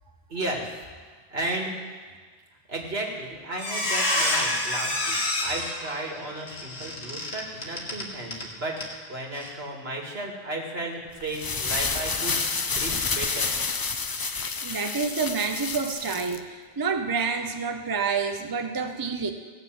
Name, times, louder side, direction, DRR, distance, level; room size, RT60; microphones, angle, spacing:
voice 1, 0.3-0.7 1.3-1.7 2.7-8.8 9.1-13.5, right 2 dB, 75° right, -1 dB, 2.2 m, -34 dB
Squeak, 3.0-3.2 3.5-8.5 8.8-8.9 9.3-9.5, left 1 dB, 85° left, 2.0 m, -28 dB
sound 1, 11.2-16.4, left 4 dB, 40° left, 0.3 m, -29 dB
voice 2, 14.6-19.3, right 5 dB, 25° right, 5 dB, 0.7 m, -28 dB
17.0 x 6.7 x 7.5 m, 1.5 s
omnidirectional pair, 1.1 m